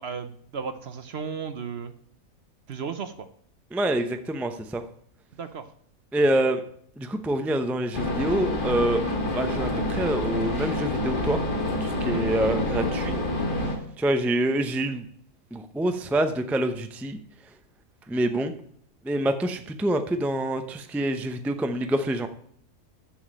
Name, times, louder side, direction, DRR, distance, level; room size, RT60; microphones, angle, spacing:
voice 1, 0.0-1.9 2.7-3.3 5.3-5.7 12.0-12.2, right 6 dB, 55° right, 10 dB, 0.9 m, -34 dB
voice 2, 3.7-4.8 6.1-6.6 7.0-9.0 9.3-11.4 11.8-13.2 14.0-15.0 15.5-17.2 18.1-18.5 19.0-22.3, right 1 dB, ahead, 8 dB, 0.5 m, -26 dB
sound 1, 7.9-13.7, left 1 dB, 35° left, 1.8 m, -27 dB
7.1 x 7.1 x 7.5 m, 0.62 s
omnidirectional pair, 1.5 m